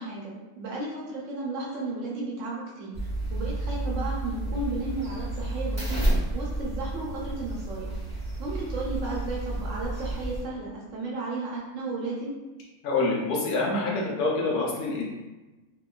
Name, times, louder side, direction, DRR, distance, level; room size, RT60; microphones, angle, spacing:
voice 1, 0.0-3.0 3.3-7.9 8.4-12.3, right 2 dB, 65° right, -4 dB, 0.8 m, -34 dB
sound 1, 2.9-10.4, right 1 dB, 10° right, 0.9 m, -31 dB
voice 2, 12.8-15.1, left 3 dB, 75° left, -4 dB, 1.1 m, -26 dB
2.9 x 2.2 x 2.2 m, 1.1 s
omnidirectional pair, 1.6 m